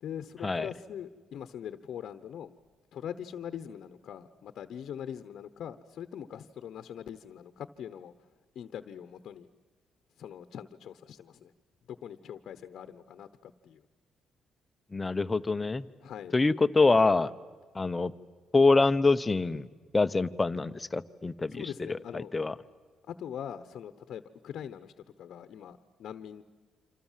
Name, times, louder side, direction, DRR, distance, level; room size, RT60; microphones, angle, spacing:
voice 1, 0.0-2.5 2.9-8.1 8.5-9.5 10.2-11.5 11.9-13.8 16.0-16.3 20.3-20.4 21.5-22.3 23.1-24.9 25.2-26.4, left 9 dB, 70° left, 11 dB, 1.0 m, -42 dB
voice 2, 14.9-15.9 16.3-17.3 17.7-18.1 18.5-19.7 19.9-22.5, left 3 dB, 20° left, 13 dB, 0.9 m, -25 dB
27.5 x 26.5 x 7.5 m, 1.5 s
cardioid pair, 90°, 0 cm